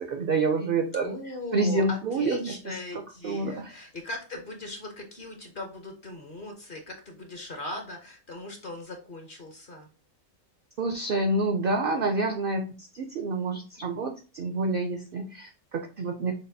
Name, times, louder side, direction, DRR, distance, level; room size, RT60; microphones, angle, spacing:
voice 1, 0.0-1.1 1.5-3.7 10.8-16.4, right 3 dB, 65° right, 5 dB, 0.5 m, -28 dB
voice 2, 1.0-9.9, left 2 dB, 45° left, 3 dB, 0.8 m, -39 dB
6.3 x 2.3 x 2.6 m, 0.35 s
omnidirectional pair, 1.5 m